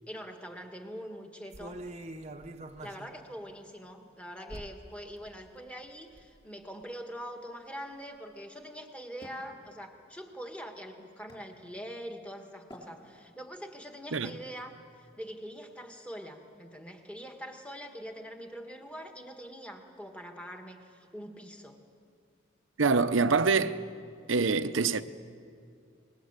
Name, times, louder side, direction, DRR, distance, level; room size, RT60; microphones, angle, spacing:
voice 1, 0.1-1.8 2.8-21.8, equal, 5° left, 1.7 m, -44 dB
sound 1, 1.5-3.1 3.5-3.6 4.5-4.9 5.2-5.3 5.8-6.4 6.8-6.9, right 1 dB, 35° right, 0.9 m, -44 dB
Wood, 9.2-12.1 12.7-13.6, left 1 dB, 25° left, 5.4 m, -54 dB
voice 2, 22.8-23.8 24.3-25.0, right 4 dB, 75° right, 0.8 m, -25 dB
27.5 x 20.5 x 8.2 m
head